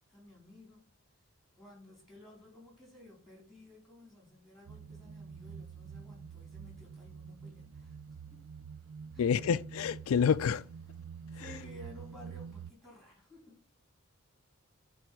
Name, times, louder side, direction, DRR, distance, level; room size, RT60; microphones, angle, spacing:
voice 1, 0.1-0.9 1.5-8.0 8.3-8.4 9.1-9.3 11.3-13.6, left 1 dB, ahead, 4.1 m, -54 dB
sound 1, 4.7-12.7, right 6 dB, 85° right, 0.4 m, -47 dB
voice 2, 9.2-10.7 11.3-11.5, left 7 dB, 85° left, 0.4 m, -28 dB
11.0 x 3.9 x 6.0 m
head